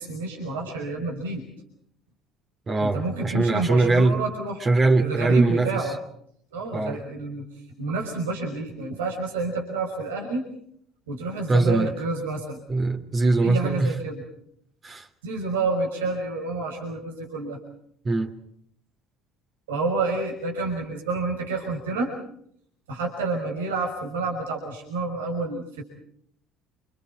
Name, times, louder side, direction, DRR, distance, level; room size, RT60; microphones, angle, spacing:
voice 1, 0.0-1.5 2.8-4.6 4.9-6.0 6.5-7.5 7.8-10.5 11.1-12.6 13.4-14.2 15.2-17.6 19.7-22.1 22.9-25.8, right 3 dB, 75° right, 5.8 m, -29 dB
voice 2, 2.7-4.1 4.6-5.8 6.7-7.0 11.5-11.9 12.7-13.9 14.8-15.1 18.0-18.3, right 2 dB, 35° right, 3.2 m, -21 dB
29.5 x 28.0 x 4.6 m
figure-of-eight pair, 60°, 0 cm